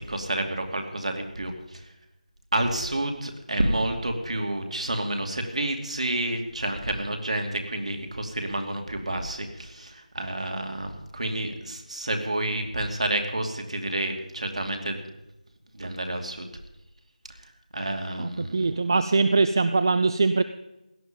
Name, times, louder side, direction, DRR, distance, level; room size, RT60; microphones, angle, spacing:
voice 1, 0.1-1.8 2.5-15.0 15.7-16.5 17.7-18.6, right 1 dB, 55° right, 4 dB, 2.6 m, -29 dB
voice 2, 18.2-20.4, right 3 dB, 30° right, 12 dB, 0.5 m, -22 dB
17.0 x 12.0 x 5.3 m, 0.97 s
figure-of-eight pair, 165°, 4 cm